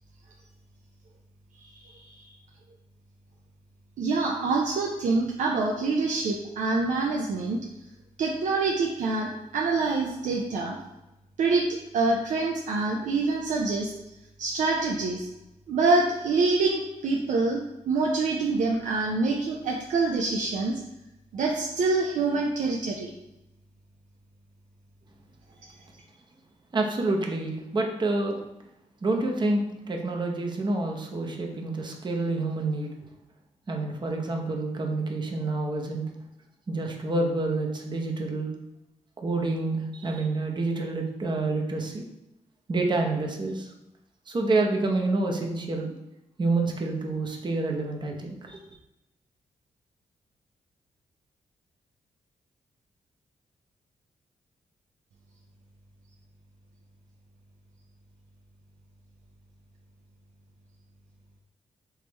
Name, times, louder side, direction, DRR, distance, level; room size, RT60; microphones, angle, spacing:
voice 1, 1.6-2.2 4.0-7.6 8.2-10.8 11.4-11.7 11.9-13.9 14.4-15.3 15.7-20.8 21.3-23.1, right 3 dB, 75° right, 0 dB, 0.5 m, -26 dB
voice 2, 26.7-28.4 29.0-32.9 33.7-36.0 36.7-38.5 39.2-42.1 42.7-43.7 44.3-46.0 46.4-48.8, right 2 dB, 35° right, 2 dB, 0.7 m, -28 dB
3.6 x 3.2 x 2.9 m, 0.93 s
cardioid pair, 75°, 13 cm